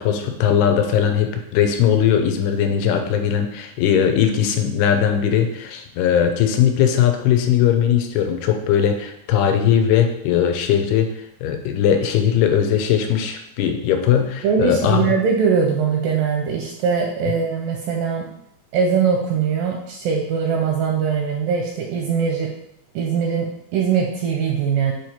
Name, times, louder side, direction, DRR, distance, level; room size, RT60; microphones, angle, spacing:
voice 1, 0.0-11.1 11.4-15.0, left 9 dB, 90° left, 5 dB, 2.7 m, -19 dB
voice 2, 14.4-18.3 18.7-22.5 23.0-24.9, right 6 dB, 80° right, 1 dB, 2.0 m, -21 dB
7.0 x 3.2 x 4.3 m, 0.78 s
omnidirectional pair, 4.5 m